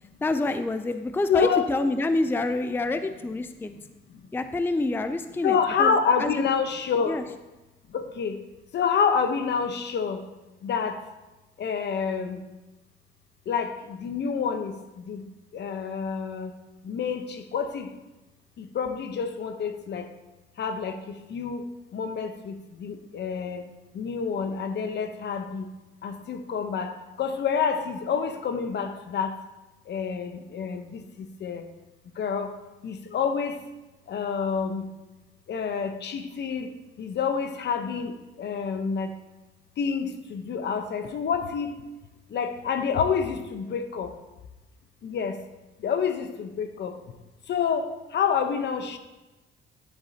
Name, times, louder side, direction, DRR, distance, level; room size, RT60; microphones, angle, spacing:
voice 1, 0.2-3.7 4.3-6.4 7.0-7.2, left 2 dB, 10° left, 9 dB, 0.4 m, -27 dB
voice 2, 1.3-1.7 5.4-7.2 7.9-8.4 8.7-10.2 10.6-11.0 11.6-12.4 13.5-15.3 15.5-16.5 16.8-17.9 18.6-20.0 20.6-21.0 21.3-21.7 21.9-23.6 23.9-25.7 26.0-26.9 27.2-29.3 29.9-31.0 31.4-31.7 32.2-32.5 32.8-33.6 34.1-34.8 35.5-36.7 37.0-38.1 38.4-39.1 39.8-41.7 42.3-44.1 45.0-45.4 45.8-46.9 47.5-49.0, left 6 dB, 60° left, 8 dB, 0.9 m, -28 dB
10.5 x 7.5 x 2.8 m, 1.1 s
cardioid pair, 90°, 20 cm